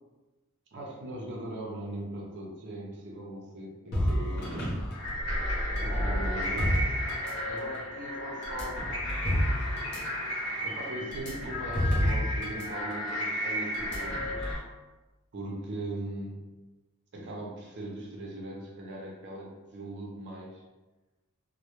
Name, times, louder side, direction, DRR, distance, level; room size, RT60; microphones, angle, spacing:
voice 1, 0.7-4.7 5.8-6.8 7.4-9.0 9.3-9.5 10.6-14.4 15.3-16.4 17.1-20.6, right 1 dB, 50° right, -2 dB, 0.4 m, -39 dB
sound 1, 3.9-7.8 8.4-12.7 12.9-13.1 13.7-14.6, equal, 45° left, 0.6 m, -31 dB
sound 2, 4.9-14.5, left 1 dB, 80° left, 0.8 m, -34 dB
2.1 x 2.0 x 2.9 m, 1.1 s
head